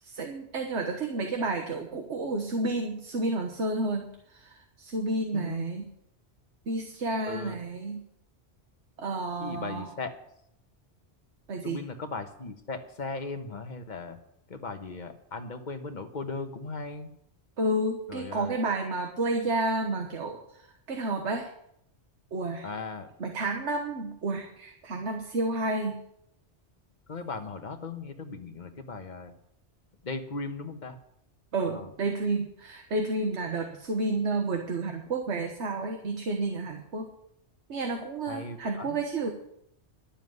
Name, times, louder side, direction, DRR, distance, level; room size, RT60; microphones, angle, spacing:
voice 1, 0.0-5.8 6.7-8.0 9.0-9.9 11.5-11.8 17.6-21.5 22.3-22.7 23.2-26.0 31.5-37.1 37.7-39.3, right 2 dB, 80° right, 3 dB, 1.6 m, -31 dB
voice 2, 5.3-5.7 7.2-7.6 9.4-10.1 11.6-14.2 14.5-17.1 18.1-18.6 22.6-23.1 27.1-29.3 30.0-31.0 31.7-31.9 38.3-39.0, left 3 dB, 45° left, 6 dB, 1.3 m, -37 dB
11.5 x 7.2 x 9.4 m, 0.75 s
omnidirectional pair, 1.1 m